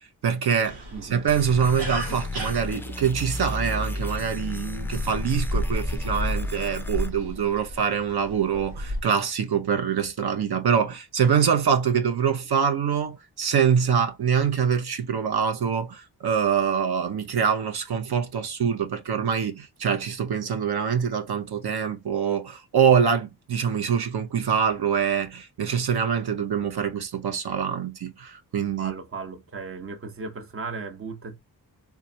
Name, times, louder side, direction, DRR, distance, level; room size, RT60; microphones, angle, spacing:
voice 1, 0.2-28.9, right 7 dB, 75° right, 0.7 m, -24 dB
sound 1, 0.6-9.0, equal, 90° right, 1.7 m, -33 dB
voice 2, 0.9-1.3 28.8-31.4, right 4 dB, 35° right, 0.8 m, -36 dB
sound 2, 1.3-7.1, left 2 dB, 5° left, 0.3 m, -32 dB
3.5 x 3.1 x 2.7 m
wide cardioid pair, 105°, 39 cm